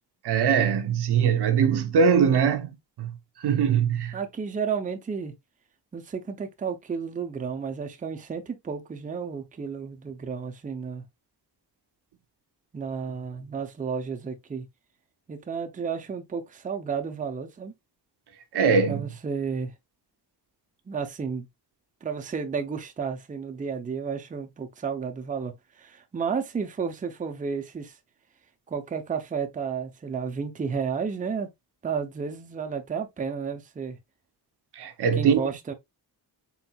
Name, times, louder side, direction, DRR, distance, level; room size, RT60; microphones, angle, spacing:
voice 1, 0.2-2.7 3.0-3.1 3.4-4.1 18.5-19.0 34.8-35.4, right 6 dB, 80° right, 0.7 m, -22 dB
voice 2, 4.1-5.3 5.9-11.0 12.7-14.7 15.3-17.7 18.8-19.7 20.9-21.5 22.0-28.0 28.7-31.5 31.8-34.0 35.1-35.7, right 6 dB, 20° right, 0.5 m, -32 dB
4.3 x 3.8 x 2.2 m
wide cardioid pair, 130°, 39 cm